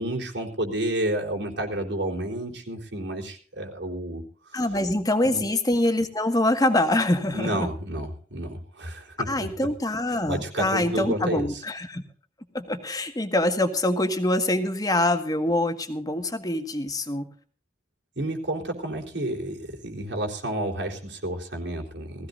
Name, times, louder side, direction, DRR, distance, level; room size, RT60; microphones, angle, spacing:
voice 1, 0.0-4.6 5.2-5.4 7.3-9.5 10.3-11.6 18.2-22.3, right 1 dB, 90° right, 0 dB, 3.9 m, -31 dB
voice 2, 4.5-7.7 9.3-12.0 12.5-17.3, left 1 dB, 20° left, 7 dB, 1.7 m, -24 dB
19.5 x 16.0 x 2.6 m, 0.43 s
head